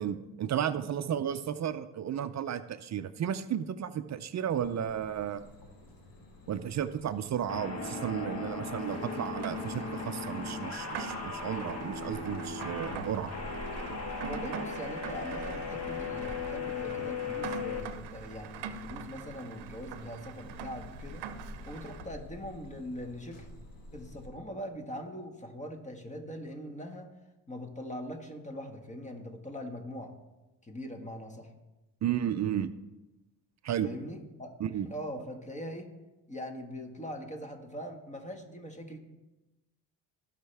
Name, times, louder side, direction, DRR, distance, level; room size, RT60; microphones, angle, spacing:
voice 1, 0.0-5.4 6.5-13.3 32.0-32.7 33.6-33.9 34.6-34.9, right 9 dB, 45° right, 11 dB, 0.6 m, -33 dB
sound 1, 4.5-24.3, left 1 dB, 55° left, 2.4 m, -50 dB
sound 2, 7.5-17.8, left 4 dB, 35° left, 1.7 m, -37 dB
Rain, 8.8-22.1, right 7 dB, 80° right, 0.8 m, -44 dB
voice 2, 14.2-21.3 21.7-23.5 23.9-27.1 27.5-30.1 30.6-31.5 33.8-34.5 34.8-35.9 36.3-39.0, equal, 15° left, 4 dB, 1.6 m, -42 dB
16.5 x 5.8 x 3.4 m, 1.0 s
cardioid pair, 85°, 40 cm